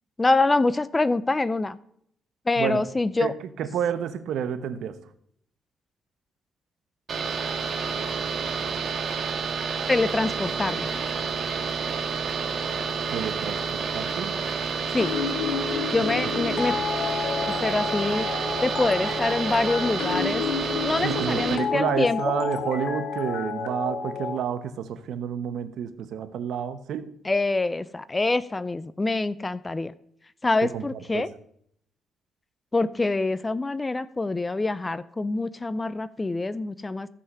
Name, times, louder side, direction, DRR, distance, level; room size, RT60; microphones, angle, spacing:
voice 1, 0.2-1.8 2.5-3.3 9.9-10.9 14.9-15.1 15.9-16.7 17.6-18.2 18.6-20.4 20.8-22.2 27.2-29.9 30.4-31.3 32.7-37.1, left 2 dB, 20° left, 17 dB, 0.5 m, -25 dB
voice 2, 3.2-5.0 13.1-14.3 16.2-16.8 21.0-27.1 30.6-31.3, right 8 dB, 75° right, 11 dB, 1.0 m, -30 dB
sound 1, 7.1-21.6, right 5 dB, 50° right, 3.1 m, -29 dB
sound 2, 15.0-24.4, left 6 dB, 80° left, 1.9 m, -30 dB
14.5 x 5.7 x 6.8 m, 0.68 s
cardioid pair, 90°, 0 cm